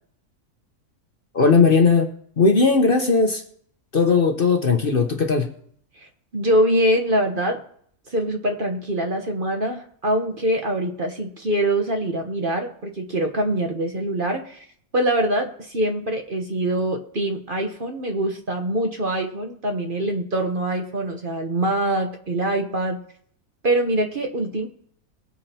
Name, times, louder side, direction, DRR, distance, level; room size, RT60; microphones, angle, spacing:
voice 1, 1.3-2.1 2.4-3.4 3.9-5.5, left 4 dB, 40° left, 5 dB, 1.0 m, -17 dB
voice 2, 6.3-7.6 8.1-14.6 14.9-23.0 23.6-24.7, right 1 dB, 40° right, 4 dB, 1.1 m, -24 dB
21.5 x 8.6 x 2.9 m, 0.62 s
omnidirectional pair, 1.5 m